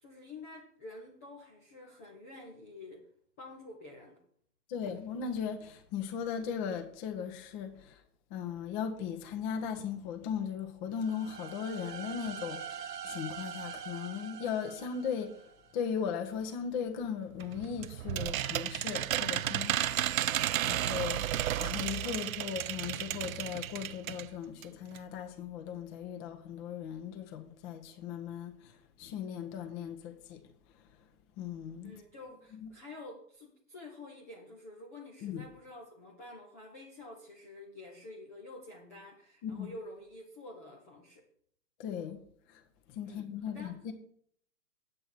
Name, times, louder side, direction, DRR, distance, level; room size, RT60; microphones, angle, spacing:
voice 1, 0.0-3.1 3.4-4.2 31.8-41.3 43.0-43.8, left 2 dB, 10° left, 0.4 m, -49 dB
voice 2, 4.7-8.0 8.3-15.3 15.7-20.4 20.6-21.3 21.6-30.4 31.4-31.9 32.6-32.7 35.2-35.4 39.4-39.7 41.8-42.2 42.5-42.6 42.9-43.9, left 7 dB, 30° left, 1.1 m, -38 dB
sound 1, 10.9-15.8, right 7 dB, 80° right, 1.0 m, -44 dB
sound 2, 17.4-24.3 24.6-24.7 24.9-25.0, right 12 dB, 60° right, 0.5 m, -33 dB
8.5 x 7.7 x 4.5 m
hypercardioid pair, 130°, 48 cm